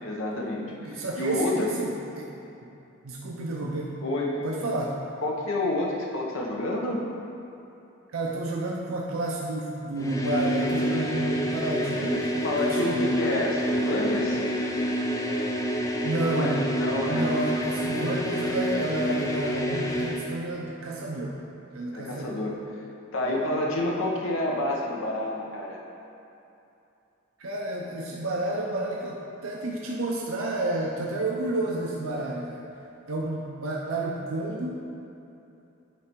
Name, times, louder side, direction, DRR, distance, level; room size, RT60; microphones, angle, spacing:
voice 1, 0.0-1.7 4.0-4.4 5.2-7.0 12.4-14.4 16.2-17.3 21.9-22.6 23.1-25.8, left 1 dB, 65° left, -2 dB, 0.8 m, -29 dB
voice 2, 0.8-2.3 3.0-4.0 4.4-5.0 8.1-13.1 16.0-16.7 17.1-21.4 21.7-22.4 23.2-23.3 27.4-32.6 33.1-34.8, right 2 dB, 75° right, -2 dB, 0.6 m, -30 dB
sound 1, 10.0-20.3, equal, 15° left, 0.5 m, -28 dB
9.2 x 3.3 x 4.5 m, 2.8 s
head